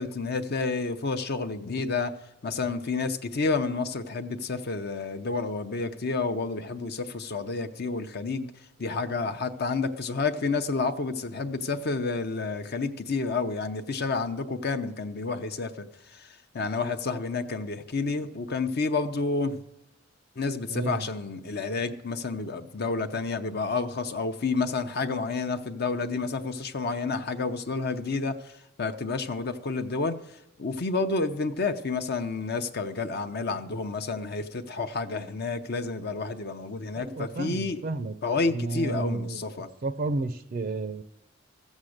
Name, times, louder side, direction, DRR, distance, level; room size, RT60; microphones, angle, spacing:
voice 1, 0.0-2.1 2.4-8.5 8.8-15.9 16.1-16.3 16.5-19.6 20.4-28.5 28.8-30.2 30.6-37.8 38.2-39.7, left 4 dB, 55° left, 0.7 m, -30 dB
voice 2, 20.7-21.0 36.9-38.1 38.5-39.4 39.8-41.0, right 3 dB, 50° right, 0.5 m, -31 dB
15.0 x 7.3 x 6.5 m
head